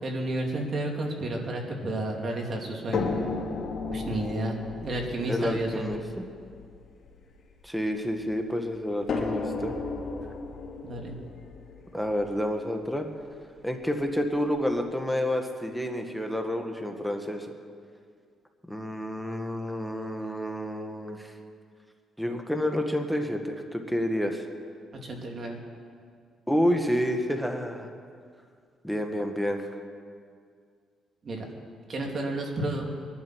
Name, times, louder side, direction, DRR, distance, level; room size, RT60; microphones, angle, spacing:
voice 1, 0.0-3.1 3.9-4.6 4.8-5.8 10.8-11.1 24.9-25.6 31.2-31.5 31.9-32.9, right 1 dB, 50° right, 0 dB, 3.0 m, -31 dB
sound 1, 2.9-8.1 9.1-13.1 14.0-14.1 14.6-14.7, left 4 dB, 55° left, 2.4 m, -35 dB
voice 2, 5.3-6.0 7.6-9.7 11.9-13.1 13.6-17.5 18.7-21.3 22.2-24.4 26.5-27.9 28.8-29.6, equal, ahead, 4 dB, 1.5 m, -29 dB
23.5 x 11.0 x 4.7 m, 2.1 s
cardioid pair, 90°, 0 cm